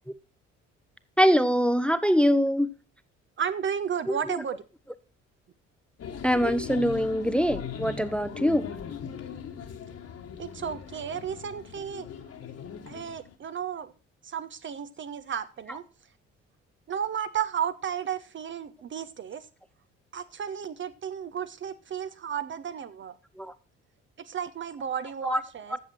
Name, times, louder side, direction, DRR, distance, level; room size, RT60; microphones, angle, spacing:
voice 1, 1.2-2.7 4.3-4.4 6.2-8.7 23.4-23.5 25.2-25.4, equal, 5° left, 13 dB, 0.7 m, -23 dB
voice 2, 3.4-4.6 10.4-12.1 12.9-13.9 14.2-15.8 16.9-19.5 20.1-23.1 24.2-25.8, right 8 dB, 35° right, 13 dB, 0.7 m, -33 dB
sound 1, 6.0-13.3, left 7 dB, 40° left, 1.5 m, -39 dB
14.0 x 7.4 x 4.4 m, 0.35 s
figure-of-eight pair, 45°, 36 cm